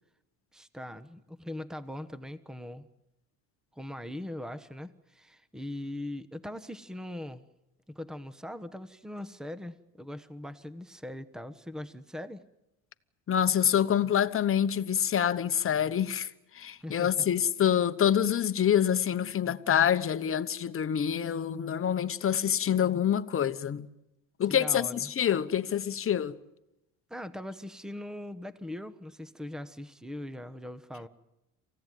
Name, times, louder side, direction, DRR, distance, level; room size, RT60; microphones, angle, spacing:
voice 1, 0.5-2.9 3.7-7.4 7.9-12.4 16.8-17.3 24.5-25.1 27.1-31.1, left 1 dB, ahead, 1.1 m, -41 dB
voice 2, 13.3-16.3 16.5-23.9 24.4-26.4, left 9 dB, 35° left, 1.1 m, -26 dB
28.0 x 16.0 x 9.3 m
cardioid pair, 110°, 39 cm